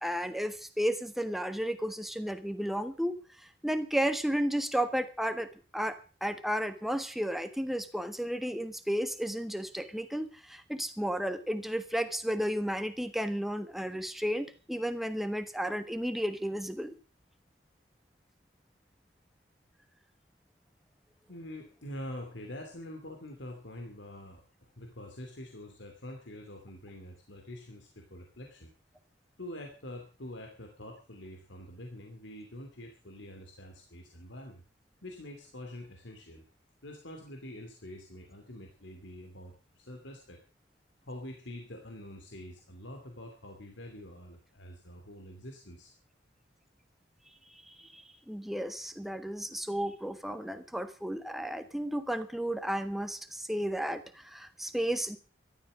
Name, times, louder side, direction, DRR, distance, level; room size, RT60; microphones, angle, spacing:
voice 1, 0.0-3.2 3.6-5.5 5.7-16.9 47.5-55.2, equal, ahead, 8 dB, 1.4 m, -33 dB
voice 2, 21.3-28.7 29.4-34.6 35.0-36.4 36.8-40.4 41.0-45.9, left 1 dB, 80° left, 3 dB, 2.8 m, -45 dB
14.0 x 12.5 x 6.3 m, 0.37 s
head